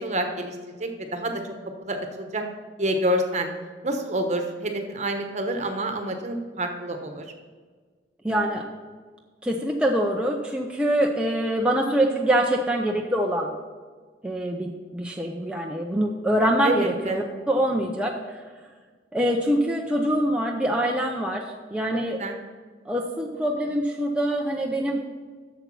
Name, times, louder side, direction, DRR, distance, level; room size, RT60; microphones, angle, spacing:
voice 1, 0.0-1.3 1.8-2.4 2.8-3.5 3.8-7.2 16.6-17.2 22.2-22.4, right 1 dB, 40° right, 5 dB, 1.1 m, -28 dB
voice 2, 8.2-8.6 9.4-13.5 14.2-18.4 19.1-21.4 21.7-22.2 22.9-25.0, right 1 dB, 5° right, 0 dB, 0.6 m, -24 dB
8.0 x 6.9 x 6.1 m, 1.5 s
head